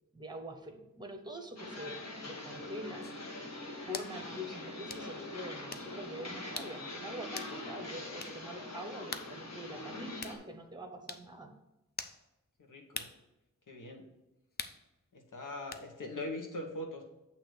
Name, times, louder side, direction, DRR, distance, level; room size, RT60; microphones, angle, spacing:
voice 1, 0.1-3.0 3.9-11.5, equal, 15° right, 5 dB, 1.0 m, -45 dB
sound 1, 1.6-10.4, left 2 dB, 55° left, 1.5 m, -43 dB
sound 2, 3.0-3.2 3.9-4.2 4.9-5.0 5.7-5.9 6.6-6.8 7.4-7.6 8.2-8.4 9.1-9.3 10.2-10.4 11.1-11.3 12.0-12.2 12.9-13.2 14.6-14.8 15.7-15.9, left 4 dB, 30° left, 0.4 m, -42 dB
voice 2, 12.7-13.1 13.7-14.0 15.1-17.0, left 1 dB, 75° left, 2 dB, 1.2 m, -41 dB
8.2 x 2.9 x 6.3 m, 0.93 s
wide cardioid pair, 70°, 32 cm